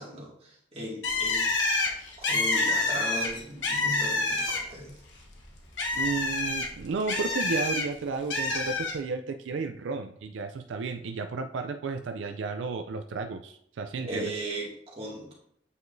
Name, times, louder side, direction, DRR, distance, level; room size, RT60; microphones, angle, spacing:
voice 1, 0.0-1.4 2.2-4.9 14.0-15.3, right 1 dB, 35° right, -4 dB, 2.0 m, -37 dB
Bird, 1.0-4.9 5.2-7.8 8.3-8.9, left 3 dB, 75° left, 1.1 m, -27 dB
voice 2, 5.9-14.3, right 4 dB, 85° right, 6 dB, 0.4 m, -33 dB
8.4 x 4.8 x 2.6 m, 0.70 s
head